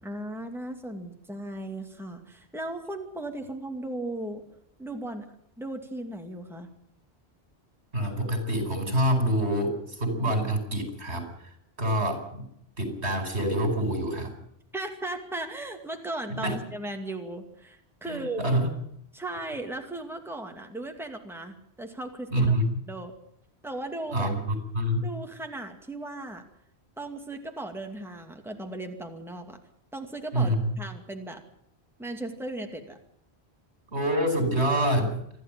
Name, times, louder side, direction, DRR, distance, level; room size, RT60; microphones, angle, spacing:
voice 1, 0.0-4.4 4.8-5.3 5.6-6.7 14.7-18.4 19.1-22.5 22.9-23.1 23.6-24.3 25.0-26.4 27.0-29.6 29.9-31.4 32.0-33.0, right 2 dB, ahead, 4 dB, 2.3 m, -36 dB
voice 2, 7.9-11.5 11.8-12.5 12.8-14.3 16.3-16.6 18.0-18.7 22.3-22.8 24.1-25.0 30.3-30.8 33.9-35.2, right 1 dB, 80° right, 6 dB, 5.4 m, -26 dB
27.5 x 11.5 x 9.1 m, 0.73 s
omnidirectional pair, 1.1 m